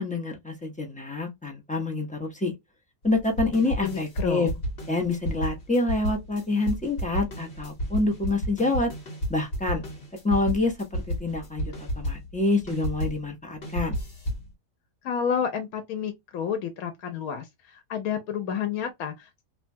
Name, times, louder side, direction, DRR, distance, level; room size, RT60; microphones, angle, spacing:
voice 1, 0.0-2.5 3.0-4.5 4.9-8.9 9.3-9.8 10.2-14.0, left 2 dB, 10° left, 0.3 m, -27 dB
sound 1, 3.0-13.2 13.6-14.5, equal, 50° left, 1.2 m, -32 dB
voice 2, 3.8-4.5 15.0-19.3, left 7 dB, 85° left, 1.1 m, -30 dB
2.8 x 2.2 x 2.5 m
omnidirectional pair, 1.5 m